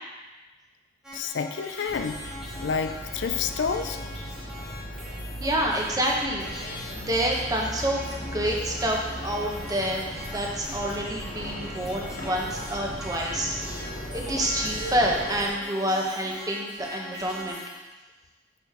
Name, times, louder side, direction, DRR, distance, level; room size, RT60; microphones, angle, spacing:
sound 1, 1.0-17.8, left 1 dB, 5° right, 1.3 m, -41 dB
voice 1, 1.1-2.2 2.6-4.0, left 6 dB, 70° left, 8 dB, 0.4 m, -29 dB
sound 2, 1.9-15.5, equal, 45° left, 1.2 m, -37 dB
voice 2, 5.4-6.5 6.9-17.6, right 1 dB, 20° right, -1 dB, 0.9 m, -28 dB
6.1 x 5.6 x 3.5 m, 1.2 s
head